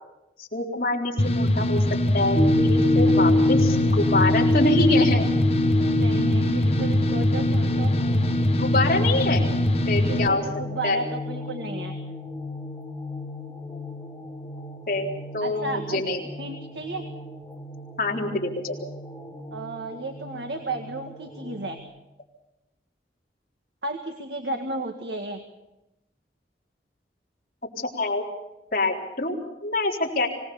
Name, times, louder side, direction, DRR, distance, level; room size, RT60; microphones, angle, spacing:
voice 1, 0.4-1.8 2.1-5.3 8.5-9.4 9.9-10.4 10.8-11.0 14.9-15.1 15.3-16.2 18.0-18.8 27.8-28.2 28.7-29.4 29.6-30.3, left 2 dB, 50° left, -2 dB, 4.1 m, -25 dB
sound 1, 1.2-10.3, left 1 dB, 35° left, 1.4 m, -23 dB
sound 2, 2.3-21.8, left 2 dB, 15° left, 2.7 m, -28 dB
voice 2, 5.9-7.9 10.0-11.9 15.4-16.0 16.3-17.0 19.5-21.8 23.8-25.4, right 2 dB, 75° right, 5 dB, 1.9 m, -33 dB
25.5 x 19.0 x 7.1 m, 0.94 s
head